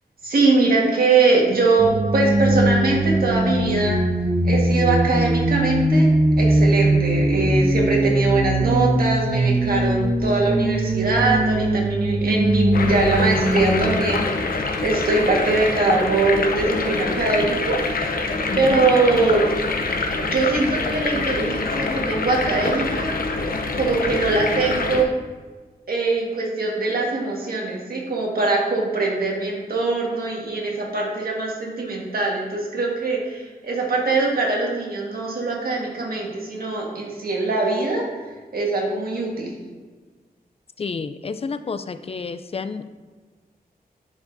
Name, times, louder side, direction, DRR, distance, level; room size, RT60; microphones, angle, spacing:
voice 1, 0.2-4.0 4.4-6.1 6.4-18.3 18.6-19.4 20.2-23.1 23.7-25.1 25.9-38.0 38.5-39.5, right 3 dB, 70° right, -2 dB, 1.6 m, -22 dB
sound 1, 1.8-13.9, right 1 dB, 25° right, 0.7 m, -20 dB
sound 2, 12.7-25.0, left 3 dB, 70° left, 0.7 m, -25 dB
voice 2, 18.5-18.9 40.8-42.8, left 4 dB, 40° left, 11 dB, 0.4 m, -30 dB
10.5 x 4.9 x 2.6 m, 1.4 s
wide cardioid pair, 100°, 16 cm